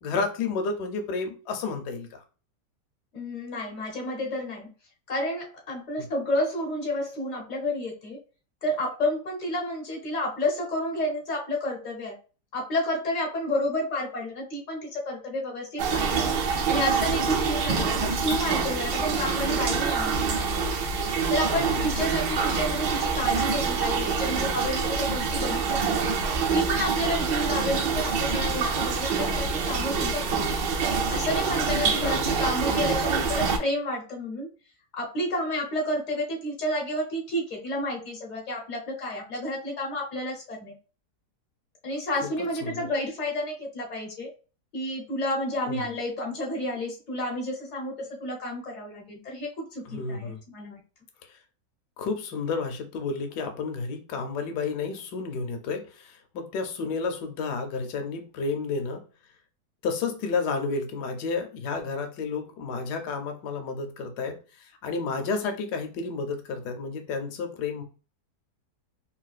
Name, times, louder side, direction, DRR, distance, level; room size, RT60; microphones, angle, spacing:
voice 1, 0.0-2.2 21.5-21.8 31.8-32.4 42.6-42.9 45.7-45.8 49.9-50.4 52.0-59.0 59.8-67.8, left 4 dB, 70° left, 1.1 m, -31 dB
voice 2, 3.1-4.7 5.1-8.2 8.6-12.1 12.5-16.3 16.7-20.7 21.3-26.1 26.5-30.5 31.1-34.5 34.9-40.7 41.8-44.3 44.7-50.8, left 1 dB, 55° left, 0.5 m, -30 dB
sound 1, 15.8-33.6, right 5 dB, 80° right, 1.3 m, -26 dB
3.8 x 2.2 x 2.4 m
omnidirectional pair, 2.0 m